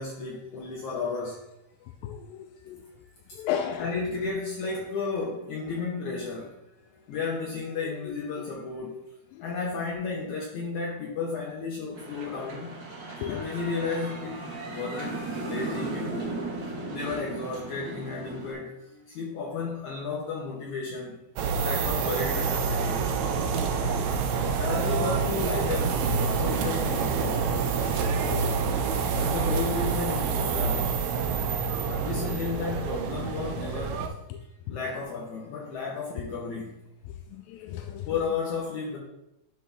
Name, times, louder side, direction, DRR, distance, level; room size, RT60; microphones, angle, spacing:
voice 1, 0.0-1.4 3.3-3.4 3.8-6.6 6.8-9.0 9.4-12.7 13.3-16.3 16.9-21.2 21.6-23.0 24.5-27.4 29.2-31.0 31.9-34.0 34.7-36.8 38.1-39.0, left 4 dB, 65° left, -3 dB, 2.3 m, -33 dB
voice 2, 2.0-2.8 3.4-3.9 13.2-13.4 28.3-28.5 37.3-38.1, left 9 dB, 85° left, 5 dB, 2.3 m, -33 dB
sound 1, 11.9-18.5, right 2 dB, 55° right, 1.6 m, -36 dB
sound 2, 21.4-34.1, right 5 dB, 80° right, 1.6 m, -27 dB
11.5 x 4.1 x 3.4 m, 0.86 s
omnidirectional pair, 4.0 m